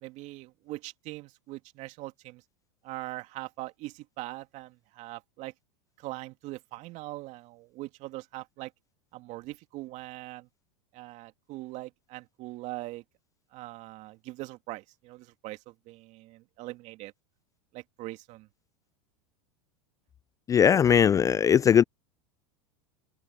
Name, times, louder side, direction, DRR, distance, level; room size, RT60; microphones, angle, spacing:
voice 1, 0.0-2.4 2.8-5.5 6.0-8.7 9.1-10.5 10.9-13.0 13.5-17.1 17.7-18.5, right 19 dB, 50° right, 2.6 m, -41 dB
voice 2, 20.5-21.8, left 8 dB, 20° left, 0.3 m, -20 dB
hypercardioid pair, 95°, 15 cm